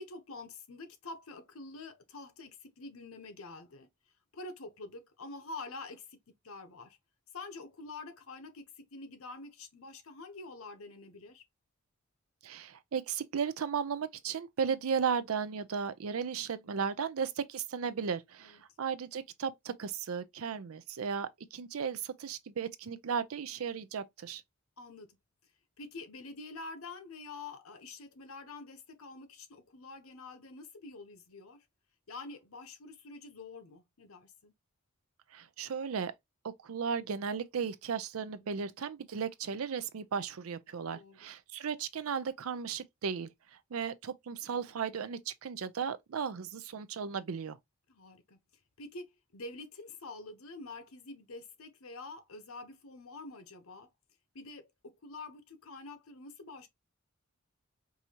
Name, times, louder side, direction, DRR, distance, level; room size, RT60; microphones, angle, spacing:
voice 1, 0.0-3.9 4.3-6.2 6.4-7.0 7.3-11.4 16.4-16.9 18.4-18.6 24.8-25.1 25.8-31.6 32.1-34.5 38.2-38.7 40.9-41.3 44.4-44.7 47.9-48.4 48.8-53.9 54.3-56.7, left 3 dB, 90° left, 0.9 m, -47 dB
voice 2, 12.4-24.4 35.3-36.1 36.6-43.3 43.7-47.6, right 6 dB, 90° right, 0.5 m, -35 dB
4.7 x 2.7 x 2.8 m
head